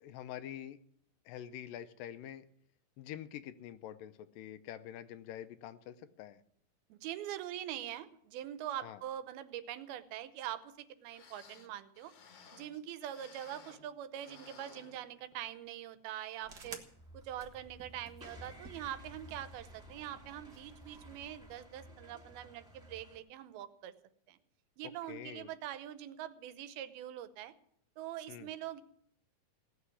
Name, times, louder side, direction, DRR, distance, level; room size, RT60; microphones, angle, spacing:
voice 1, 0.0-0.8 1.3-2.5 3.0-6.4 8.8-9.0 24.8-25.5 28.3-28.5, left 11 dB, 75° left, 11 dB, 2.3 m, -46 dB
voice 2, 6.9-12.1 12.5-16.8 17.1-23.9 24.3-24.4 24.8-27.5 28.0-28.8, right 11 dB, 90° right, 13 dB, 2.8 m, -43 dB
sound 1, 10.8-10.9 11.1-13.9 14.2-15.5 15.9-16.0 16.7-16.9 17.4-17.5, left 5 dB, 55° left, 1.8 m, -58 dB
sound 2, 16.4-21.6, right 4 dB, 55° right, 1.1 m, -55 dB
sound 3, 16.9-23.2, equal, ahead, 1.9 m, -54 dB
17.5 x 6.9 x 9.8 m, 0.66 s
omnidirectional pair, 4.2 m